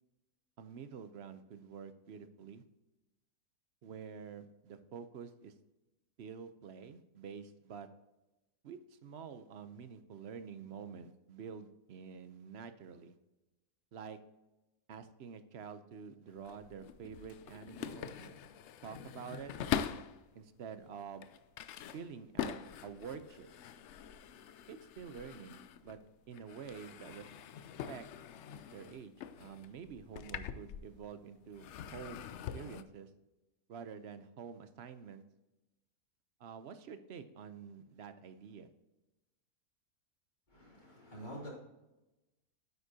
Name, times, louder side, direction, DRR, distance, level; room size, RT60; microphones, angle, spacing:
voice 1, 0.6-2.6 3.8-5.5 6.2-7.9 8.6-13.1 13.9-14.2 14.9-18.4 18.8-19.5 20.3-21.2 21.9-22.6 22.8-23.5 24.7-26.0 26.3-27.3 27.9-28.1 28.7-31.7 31.9-33.1 33.7-35.2 36.4-38.7, right 6 dB, 55° right, 10 dB, 0.8 m, -48 dB
sound 1, 16.3-20.2 20.8-26.1 26.3-31.2 31.5-32.8, left 9 dB, 70° left, 0.7 m, -43 dB
voice 2, 40.5-41.5, equal, 30° left, -5 dB, 3.3 m, -47 dB
9.8 x 8.1 x 2.8 m, 1.0 s
omnidirectional pair, 1.6 m